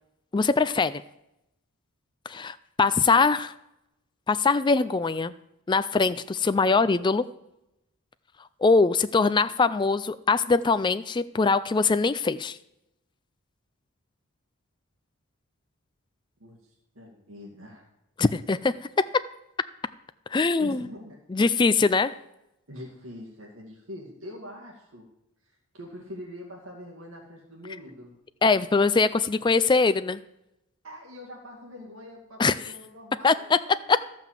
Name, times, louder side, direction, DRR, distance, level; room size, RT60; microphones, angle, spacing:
voice 1, 0.3-1.0 2.3-3.5 4.3-5.3 5.7-7.3 8.6-12.6 18.2-18.7 20.3-20.9 21.3-22.2 28.4-30.2 32.4-32.5 33.2-33.6 33.9-34.0, left 4 dB, 20° left, 13 dB, 0.3 m, -22 dB
voice 2, 16.4-17.9 20.6-21.2 21.5-21.6 22.7-25.0 25.4-28.1 30.8-33.9, left 1 dB, 60° right, -2 dB, 2.2 m, -44 dB
14.0 x 5.9 x 7.4 m, 0.87 s
head